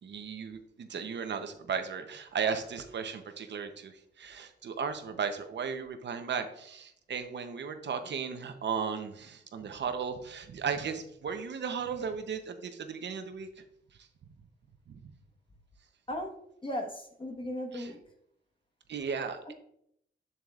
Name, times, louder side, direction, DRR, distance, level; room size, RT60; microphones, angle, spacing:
voice 1, 0.0-13.5 14.0-14.1 14.9-15.0 17.7-17.9 18.9-19.5, right 6 dB, 60° right, 7 dB, 0.8 m, -35 dB
voice 2, 16.6-18.0 19.4-19.5, left 1 dB, 25° left, 2 dB, 1.3 m, -36 dB
8.1 x 7.3 x 2.4 m, 0.72 s
wide cardioid pair, 120°, 20 cm